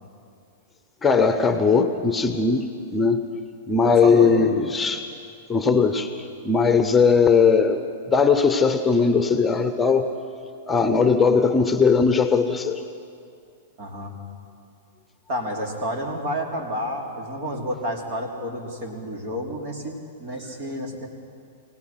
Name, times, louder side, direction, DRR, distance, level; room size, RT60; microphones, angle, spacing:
voice 1, 1.0-3.2 3.7-5.1 5.5-6.1 6.4-10.1 10.7-12.8, left 5 dB, 15° left, 9 dB, 1.0 m, -19 dB
voice 2, 3.8-4.6 13.8-14.1 15.3-21.1, equal, 55° right, 1 dB, 3.7 m, -30 dB
24.0 x 18.0 x 6.0 m, 2.5 s
hypercardioid pair, 115°, 0 cm